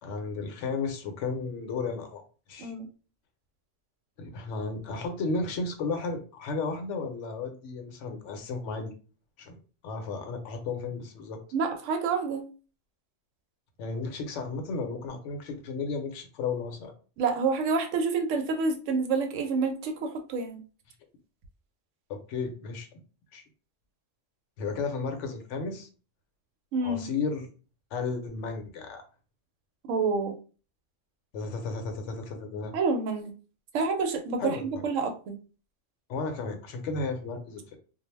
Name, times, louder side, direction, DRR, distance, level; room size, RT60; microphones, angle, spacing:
voice 1, 0.0-2.2 2.5-2.7 4.2-8.9 9.4-9.6 9.8-11.4 13.8-16.9 22.1-23.0 23.3-23.4 24.6-25.9 26.8-27.5 27.9-29.0 31.3-32.7 34.4-34.8 36.1-37.8, left 4 dB, 75° left, 6 dB, 0.9 m, -33 dB
voice 2, 11.5-12.4 17.2-20.6 26.7-27.1 29.9-30.3 32.7-33.3 33.7-35.4, right 4 dB, 80° right, 5 dB, 0.9 m, -28 dB
2.3 x 2.0 x 3.1 m, 0.36 s
omnidirectional pair, 1.3 m